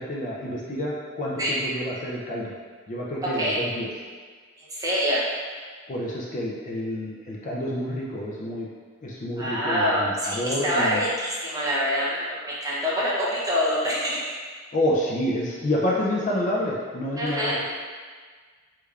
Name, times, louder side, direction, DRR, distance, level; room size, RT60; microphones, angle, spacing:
voice 1, 0.0-2.5 2.9-3.9 5.9-8.7 9.0-11.1 14.7-17.6, left 1 dB, 35° left, -4 dB, 0.4 m, -28 dB
voice 2, 4.6-5.3 9.4-14.3 17.2-17.6, equal, 15° right, -7 dB, 0.6 m, -25 dB
3.3 x 3.3 x 2.3 m, 1.5 s
head